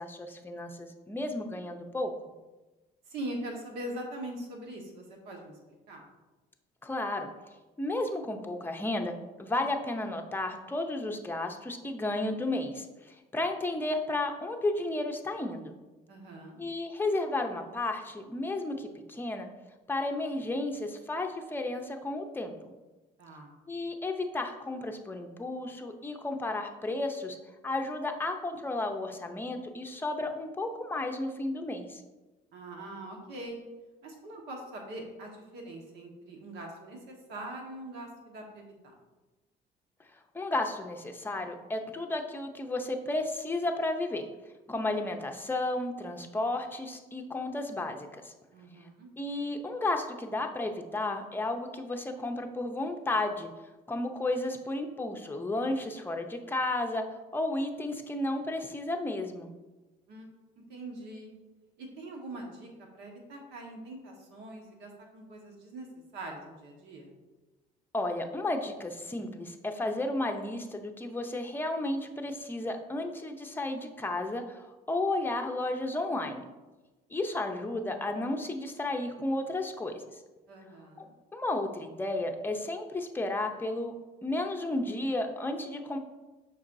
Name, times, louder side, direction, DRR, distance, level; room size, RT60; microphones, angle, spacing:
voice 1, 0.0-2.1 6.8-7.3 7.8-15.7 16.6-19.5 19.9-22.6 23.7-27.4 27.6-32.0 40.3-44.3 44.7-48.3 49.2-53.5 53.9-57.0 57.3-59.5 67.9-76.4 77.1-79.9 81.3-83.9 84.2-86.0, left 2 dB, 10° left, 4 dB, 0.6 m, -33 dB
voice 2, 3.1-5.5 5.9-6.0 16.1-16.6 23.2-23.5 32.5-33.6 34.0-38.9 48.5-49.1 60.1-60.3 60.7-61.3 61.8-62.7 63.0-65.9 66.1-67.1 80.5-81.1, right 1 dB, 85° right, 1 dB, 1.4 m, -42 dB
6.9 x 5.3 x 2.6 m, 1.2 s
cardioid pair, 110°, 17 cm